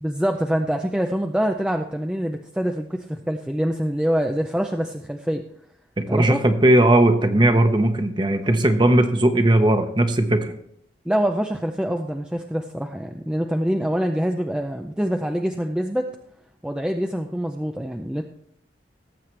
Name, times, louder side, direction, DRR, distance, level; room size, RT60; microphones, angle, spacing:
voice 1, 0.0-5.4 6.1-6.4 11.1-16.1 16.6-18.2, equal, 5° right, 4 dB, 0.5 m, -25 dB
voice 2, 6.1-10.5, right 1 dB, 25° right, 7 dB, 1.0 m, -18 dB
18.0 x 7.7 x 3.3 m, 0.73 s
head